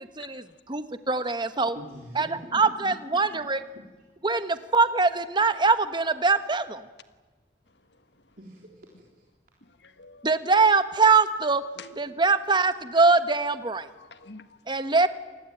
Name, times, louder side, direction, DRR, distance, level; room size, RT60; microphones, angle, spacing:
voice 1, 0.0-1.8 2.1-3.6 4.2-6.8 10.2-11.6 12.0-13.9 14.7-15.1, right 4 dB, 25° right, 11 dB, 1.2 m, -23 dB
voice 2, 1.7-3.0 3.3-3.4 8.4-9.2, right 1 dB, 55° right, -1 dB, 3.6 m, -44 dB
voice 3, 9.6-10.3 11.8-12.0 14.0-14.9, left 4 dB, 75° left, 10 dB, 1.6 m, -48 dB
27.5 x 19.5 x 9.2 m, 1.3 s
head